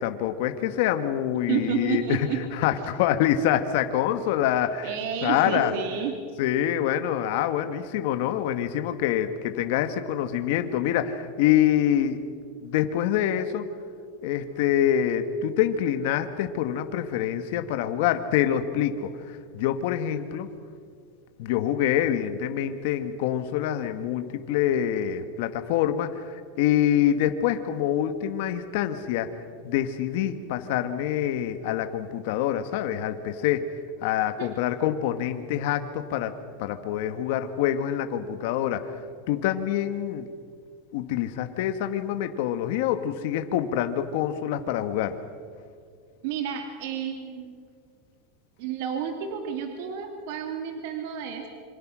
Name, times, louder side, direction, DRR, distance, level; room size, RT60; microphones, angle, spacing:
voice 1, 0.0-4.9 5.2-5.7 6.4-12.2 12.6-13.7 14.2-20.5 21.4-29.3 29.6-33.7 34.0-36.3 36.6-38.8 39.3-40.3 40.9-45.2, left 11 dB, 65° left, 8 dB, 1.5 m, -26 dB
voice 2, 1.5-2.4 4.8-6.1 34.4-34.5 46.2-47.6 48.6-51.5, right 8 dB, 65° right, 4 dB, 2.5 m, -30 dB
27.0 x 25.5 x 6.3 m, 2.1 s
supercardioid pair, 150°, 0 cm